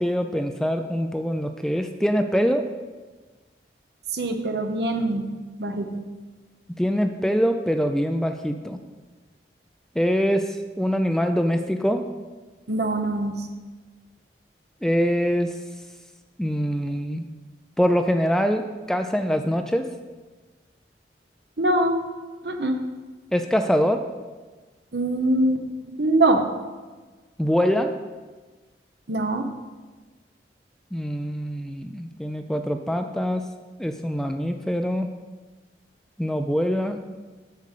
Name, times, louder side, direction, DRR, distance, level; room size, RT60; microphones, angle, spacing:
voice 1, 0.0-2.7 6.8-8.8 10.0-12.0 14.8-15.6 16.4-17.2 17.8-19.9 23.3-24.0 27.4-27.9 30.9-33.4 33.8-35.1 36.2-37.0, equal, 5° left, 6 dB, 0.3 m, -24 dB
voice 2, 4.1-5.2 5.6-6.0 12.7-13.4 21.6-22.0 22.4-22.8 24.9-25.6 26.0-26.4 29.1-29.5, right 2 dB, 70° right, 5 dB, 0.9 m, -23 dB
8.3 x 5.3 x 6.7 m, 1.3 s
head